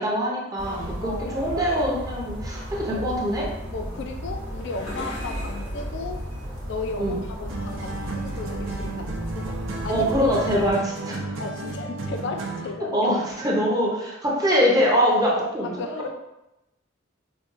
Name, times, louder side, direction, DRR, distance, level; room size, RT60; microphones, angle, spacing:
voice 1, 0.0-3.5 7.0-7.2 9.9-11.3 12.9-16.1, equal, 20° right, -4 dB, 0.6 m, -23 dB
sound 1, 0.6-10.7, equal, 90° right, 0.9 m, -35 dB
voice 2, 1.0-1.5 2.9-3.0 3.7-6.2 6.7-9.1 9.3-9.6 9.8-10.1 10.5-10.7 11.4-13.1 14.3-14.4 15.6-16.1, left 4 dB, 60° left, 4 dB, 0.4 m, -35 dB
sound 2, 3.9-7.4, left 1 dB, 85° left, 1.3 m, -41 dB
sound 3, 7.5-12.8, right 2 dB, 70° right, 0.5 m, -33 dB
5.0 x 2.2 x 2.5 m, 0.92 s
head